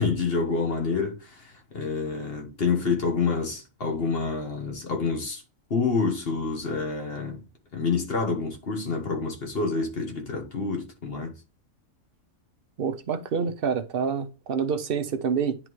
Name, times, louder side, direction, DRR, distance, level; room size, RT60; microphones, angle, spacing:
voice 1, 0.0-5.4 5.7-7.4 7.7-11.3, left 4 dB, 45° left, 1.5 m, -28 dB
voice 2, 12.8-15.6, right 6 dB, 50° right, 0.8 m, -27 dB
10.0 x 3.6 x 3.1 m
omnidirectional pair, 1.4 m